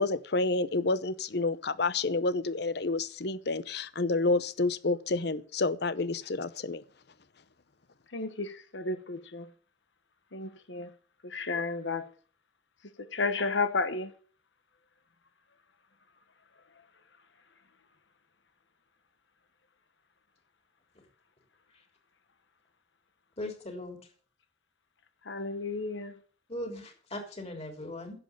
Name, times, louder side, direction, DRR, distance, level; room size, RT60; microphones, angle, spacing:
voice 1, 0.0-6.8, left 3 dB, 60° left, 0.8 m, -29 dB
voice 2, 8.1-9.5 10.3-10.9 11.2-12.1 13.1-14.1 25.3-26.1, left 3 dB, 85° left, 1.3 m, -32 dB
voice 3, 23.4-24.0 26.5-28.2, left 1 dB, 35° left, 3.5 m, -39 dB
11.0 x 7.7 x 7.2 m
head